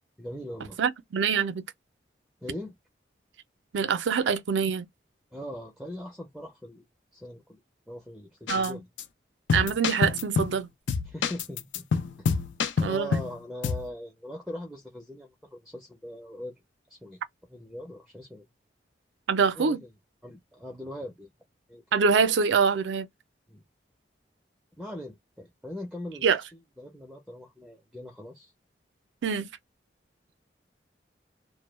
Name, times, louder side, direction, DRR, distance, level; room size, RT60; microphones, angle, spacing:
voice 1, 0.2-0.8 2.4-2.7 5.3-6.8 7.1-7.6 7.9-8.9 11.0-11.8 12.2-12.3 12.8-16.5 16.9-17.2 17.5-18.4 19.5-19.9 20.2-21.3 21.7-21.8 23.5-23.6 24.8-26.5 26.8-28.5, equal, ahead, 0.4 m, -40 dB
voice 2, 0.8-1.6 3.7-4.9 8.5-8.8 9.5-10.7 12.8-13.2 19.3-19.8 21.9-23.1 26.2-26.4 29.2-29.5, right 6 dB, 80° right, 0.4 m, -25 dB
sound 1, 8.5-8.7 9.0-9.1 9.5-10.6 10.9-13.3 13.6-13.9, left 5 dB, 90° left, 0.4 m, -27 dB
2.1 x 2.0 x 3.0 m
head